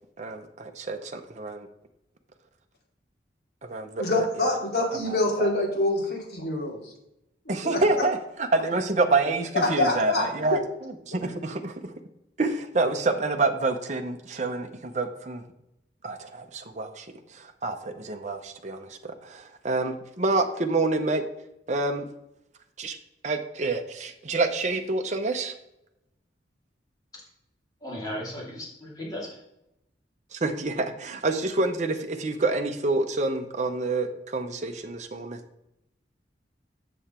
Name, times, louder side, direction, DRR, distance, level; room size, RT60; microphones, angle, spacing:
voice 1, 0.2-1.7 3.6-4.0 4.4-4.5 5.0-5.5 7.5-11.9 12.4-15.4 16.0-21.2 21.7-22.1 22.8-23.0 23.2-25.5 30.3-35.4, right 3 dB, 40° right, 5 dB, 0.7 m, -28 dB
voice 2, 4.0-6.9 7.6-8.0 9.6-10.6, left 2 dB, 60° left, -2 dB, 2.6 m, -26 dB
voice 3, 27.8-29.4, left 1 dB, 20° left, -5 dB, 2.6 m, -36 dB
7.1 x 6.8 x 4.3 m, 0.85 s
head